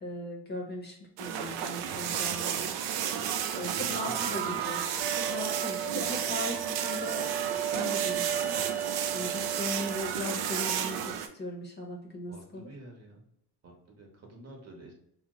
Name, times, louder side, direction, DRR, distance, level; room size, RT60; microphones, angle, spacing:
voice 1, 0.0-2.7 3.6-4.8 5.1-7.3 7.7-8.6 9.1-12.7, left 1 dB, 25° left, 1 dB, 0.7 m, -38 dB
sound 1, 1.2-11.3, right 9 dB, 75° right, 0.5 m, -32 dB
voice 2, 3.6-4.6 12.3-13.2 13.6-14.9, right 1 dB, 40° right, 1 dB, 1.0 m, -49 dB
sound 2, 5.0-10.0, right 10 dB, 5° right, 0.3 m, -35 dB
2.8 x 2.1 x 3.6 m, 0.72 s
supercardioid pair, 90°, 38 cm